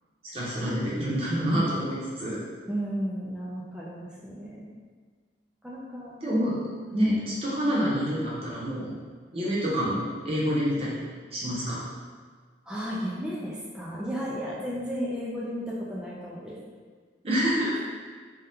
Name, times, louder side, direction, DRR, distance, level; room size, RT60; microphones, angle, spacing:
voice 1, 0.2-2.4 6.2-6.6 6.9-8.9 9.3-11.0 11.3-11.8 17.2-17.8, equal, 30° right, -7 dB, 0.8 m, -27 dB
voice 2, 2.7-4.7 5.6-6.2 7.1-7.2 12.6-16.6, equal, 5° right, -6 dB, 0.3 m, -34 dB
3.4 x 2.3 x 2.7 m, 1.6 s
head